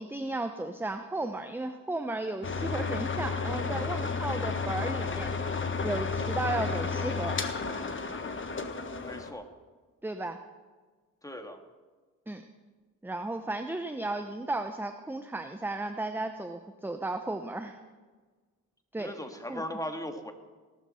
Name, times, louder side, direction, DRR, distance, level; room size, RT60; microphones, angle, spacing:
voice 1, 0.0-5.3 5.8-7.4 10.0-10.4 12.3-12.4 13.0-17.8 18.9-19.1 19.5-19.6, right 2 dB, 5° right, 7 dB, 0.8 m, -34 dB
sound 1, 2.4-9.3, left 4 dB, 35° left, 1.5 m, -32 dB
voice 2, 9.1-9.4 11.2-11.6 19.0-20.3, equal, 10° left, 6 dB, 1.8 m, -38 dB
18.0 x 12.5 x 4.3 m, 1.4 s
cardioid pair, 75°, 33 cm